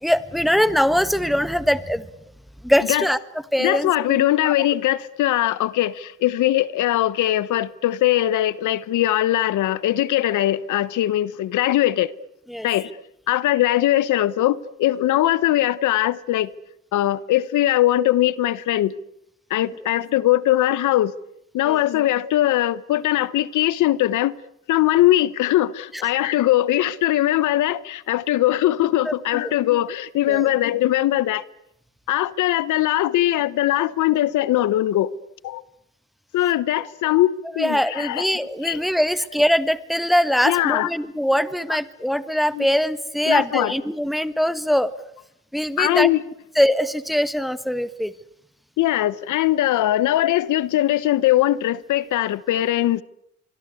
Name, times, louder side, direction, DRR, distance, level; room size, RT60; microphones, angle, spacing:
voice 1, 0.0-2.0 2.6-3.2 3.5-4.5 12.5-12.7 21.6-21.8 29.0-29.1 29.4-29.5 30.3-30.5 37.6-44.9 45.5-46.1 46.5-48.1, equal, ahead, 1.5 m, -22 dB
voice 2, 3.6-12.1 12.6-12.9 13.3-16.5 16.9-18.9 19.5-21.1 21.5-24.3 24.7-31.4 32.1-35.1 35.4-35.6 36.3-38.3 38.6-38.8 40.4-40.9 42.5-42.7 43.3-43.7 45.8-46.2 48.8-53.0, left 14 dB, 80° left, 1.1 m, -20 dB
26.0 x 23.0 x 8.4 m
cardioid pair, 90°, 30 cm